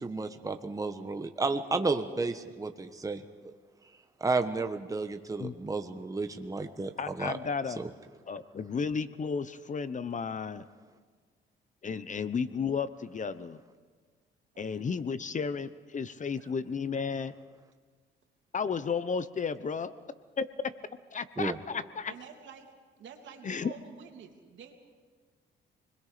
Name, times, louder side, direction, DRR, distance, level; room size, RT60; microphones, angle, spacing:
voice 1, 0.0-3.5 4.2-7.4 7.8-7.9 21.4-21.6, right 3 dB, 15° right, 6 dB, 1.2 m, -32 dB
voice 2, 7.0-7.8 8.3-10.6 11.8-13.6 14.6-17.3 18.5-19.9 20.4-20.5 21.1-22.1 23.4-23.7, left 5 dB, 40° left, 14 dB, 1.0 m, -33 dB
voice 3, 16.4-16.7 22.0-22.7 23.0-24.7, right 7 dB, 70° right, 3 dB, 3.1 m, -49 dB
28.5 x 21.5 x 5.2 m, 1.5 s
cardioid pair, 90°, 20 cm